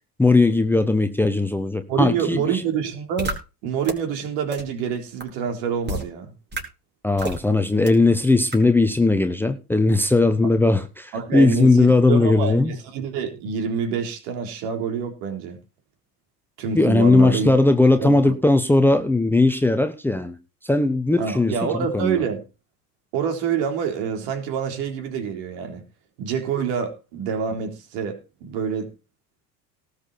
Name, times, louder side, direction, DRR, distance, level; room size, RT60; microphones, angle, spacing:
voice 1, 0.2-2.6 7.0-12.7 16.7-20.4 20.6-22.2, left 2 dB, 5° left, 1.1 m, -18 dB
voice 2, 1.9-3.3 3.6-6.3 11.1-15.6 16.6-17.5 18.0-18.3 21.2-22.4 23.1-25.8 26.2-28.9, right 7 dB, 55° right, 3.8 m, -26 dB
sound 1, 3.2-3.3 3.8-3.9 4.5-4.6 5.2-5.3 5.9-6.0 6.5-6.6 7.2-7.4 7.9-8.0 8.5-8.6, right 1 dB, 20° right, 4.3 m, -28 dB
18.5 x 6.6 x 4.2 m
figure-of-eight pair, 70°, 47 cm